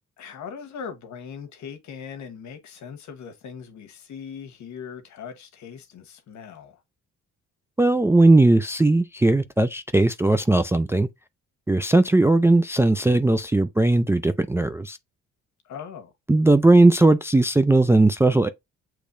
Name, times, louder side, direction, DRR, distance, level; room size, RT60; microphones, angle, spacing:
voice 1, 0.0-6.8 15.6-16.1, left 7 dB, 70° left, 1.2 m, -40 dB
voice 2, 7.8-11.1 11.7-15.0 16.3-18.5, right 2 dB, 10° right, 0.3 m, -18 dB
6.7 x 3.1 x 2.6 m
cardioid pair, 90°, 30 cm